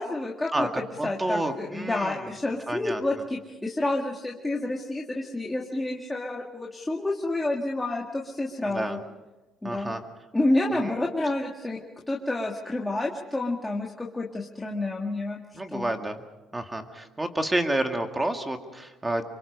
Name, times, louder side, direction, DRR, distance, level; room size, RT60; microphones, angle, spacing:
voice 1, 0.0-9.0 9.6-10.0 10.3-11.8 12.1-15.4 15.7-15.9, left 2 dB, 10° left, -1 dB, 1.9 m, -29 dB
voice 2, 0.5-2.2 2.7-3.0 8.7-9.0 9.6-10.0 10.8-11.0 15.5-16.2 16.5-19.2, right 1 dB, 10° right, 5 dB, 2.1 m, -29 dB
26.5 x 24.0 x 5.4 m, 1.1 s
cardioid pair, 130°, 0 cm